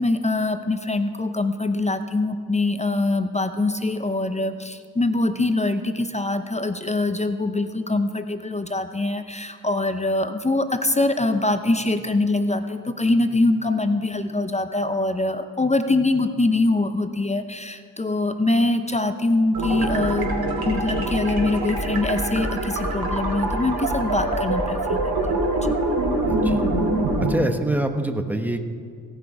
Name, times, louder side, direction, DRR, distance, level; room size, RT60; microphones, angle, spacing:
voice 1, 0.0-20.3 20.6-25.1 25.6-25.7, left 2 dB, 15° left, 9 dB, 0.7 m, -23 dB
sound 1, 19.5-27.3, right 2 dB, 60° right, 3.1 m, -24 dB
voice 2, 26.3-26.7 27.3-28.7, right 1 dB, 5° right, 6 dB, 1.2 m, -25 dB
17.0 x 6.2 x 4.9 m, 2.1 s
supercardioid pair, 55°, 41 cm